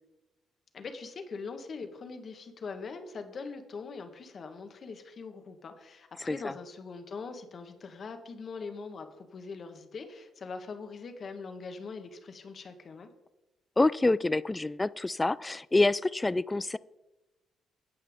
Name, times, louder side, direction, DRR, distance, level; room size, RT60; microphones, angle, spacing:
voice 1, 0.7-13.1, left 4 dB, 50° left, 7 dB, 1.4 m, -42 dB
voice 2, 13.8-16.8, left 2 dB, 15° left, 19 dB, 0.3 m, -27 dB
17.0 x 5.7 x 3.6 m, 1.0 s
cardioid pair, 90°, 0 cm